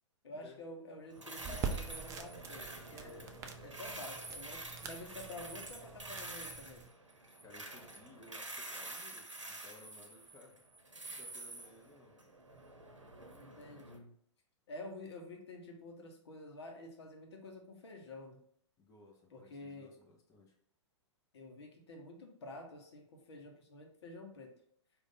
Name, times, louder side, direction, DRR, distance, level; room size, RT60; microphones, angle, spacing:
voice 1, 0.2-3.3 3.6-6.9 13.4-14.1 14.7-18.4 19.3-19.9 21.3-24.6, left 2 dB, 60° left, 2 dB, 1.0 m, -49 dB
sound 1, 1.1-14.0, right 2 dB, 85° right, 0.8 m, -48 dB
sound 2, 1.4-6.9, right 5 dB, 20° right, 0.4 m, -45 dB
voice 2, 3.0-3.4 7.4-10.6 11.1-12.2 18.8-20.6, left 2 dB, 20° left, -1 dB, 0.8 m, -59 dB
5.0 x 2.6 x 3.8 m, 0.66 s
figure-of-eight pair, 105°, 15 cm